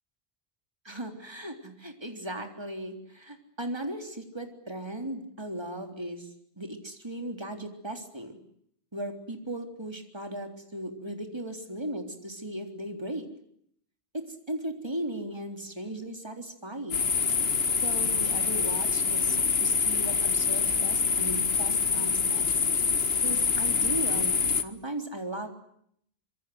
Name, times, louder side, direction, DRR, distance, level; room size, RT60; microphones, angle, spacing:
voice 1, 0.8-8.4 8.9-13.3 14.1-17.1 17.8-22.7 23.2-25.5, right 1 dB, 25° right, 4 dB, 3.7 m, -37 dB
sound 1, 16.9-24.6, left 5 dB, 80° left, 1.6 m, -26 dB
25.5 x 25.5 x 7.9 m, 0.69 s
omnidirectional pair, 1.0 m